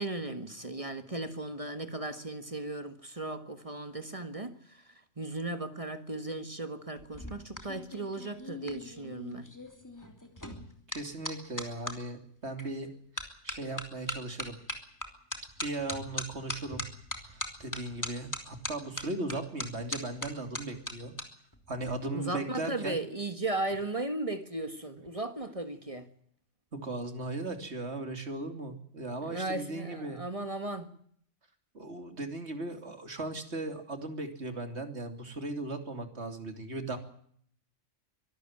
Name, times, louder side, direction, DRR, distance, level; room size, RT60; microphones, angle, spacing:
voice 1, 0.0-4.8 5.2-9.5 22.1-26.1 29.3-30.9, right 2 dB, 30° right, 1.6 m, -36 dB
sound 1, 7.0-12.0 12.6-12.9 13.2-21.2 21.5-21.9, left 1 dB, 15° left, 3.0 m, -39 dB
voice 2, 10.9-14.6 15.6-16.8 17.3-21.1 21.7-23.0 26.7-30.2 31.7-37.0, right 2 dB, 65° right, 3.2 m, -37 dB
24.0 x 13.0 x 9.0 m
omnidirectional pair, 1.2 m